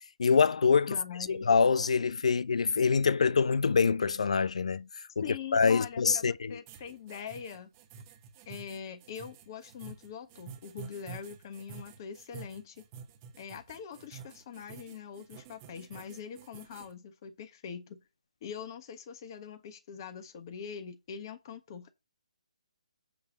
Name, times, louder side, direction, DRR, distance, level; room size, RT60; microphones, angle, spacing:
voice 1, 0.2-0.9 1.3-4.9 5.2-5.3 5.5-6.6, left 5 dB, 65° left, 0.5 m, -25 dB
voice 2, 0.9-1.5 5.2-7.7 8.5-12.8 13.4-18.0 18.4-21.9, left 7 dB, 35° left, 1.3 m, -43 dB
sound 1, 6.7-16.9, right 7 dB, 25° right, 1.2 m, -49 dB
8.5 x 3.4 x 6.5 m
figure-of-eight pair, 145°, 4 cm